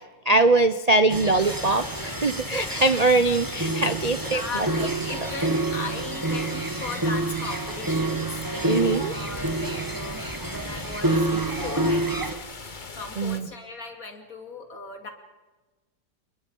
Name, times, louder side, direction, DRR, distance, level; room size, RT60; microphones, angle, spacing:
voice 1, 0.2-4.7 8.6-9.1 13.2-13.5, right 2 dB, 60° right, 11 dB, 0.4 m, -22 dB
sound 1, 1.1-12.3, right 2 dB, 15° right, 1.1 m, -28 dB
sound 2, 1.4-13.4, left 4 dB, 30° left, 1.3 m, -40 dB
voice 2, 4.3-8.5 9.1-10.2 10.5-12.5 13.0-15.1, left 3 dB, 50° left, 5 dB, 3.0 m, -37 dB
29.0 x 20.5 x 5.5 m, 1.2 s
omnidirectional pair, 2.0 m